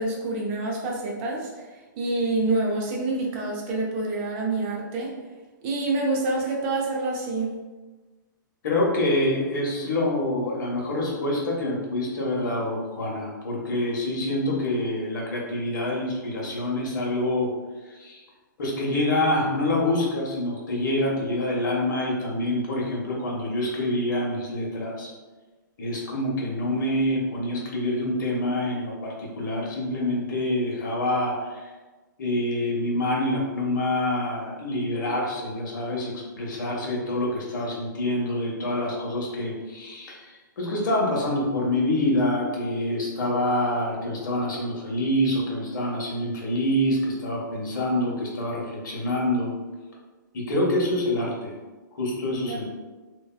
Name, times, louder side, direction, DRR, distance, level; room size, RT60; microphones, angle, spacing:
voice 1, 0.0-1.5 2.0-5.1 5.6-7.5 52.5-52.6, right 2 dB, 30° right, -2 dB, 0.5 m, -27 dB
voice 2, 8.6-17.5 18.0-18.2 18.6-25.1 25.8-31.5 32.2-40.2 40.6-49.5 50.3-51.5 51.9-52.6, left 1 dB, 70° left, -2 dB, 0.8 m, -26 dB
2.6 x 2.2 x 2.3 m, 1.3 s
hypercardioid pair, 140°, 11 cm